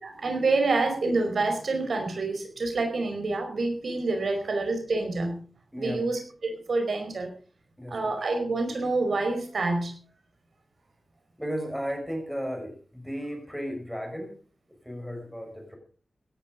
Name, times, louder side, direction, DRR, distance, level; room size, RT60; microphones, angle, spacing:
voice 1, 0.0-5.4 5.8-7.3 7.9-9.9, right 3 dB, 80° right, 5 dB, 4.8 m, -27 dB
voice 2, 5.7-6.1 7.8-8.2 11.4-14.4 14.8-15.8, equal, ahead, 4 dB, 5.9 m, -34 dB
17.0 x 12.0 x 5.1 m, 0.41 s
wide cardioid pair, 100°, 0 cm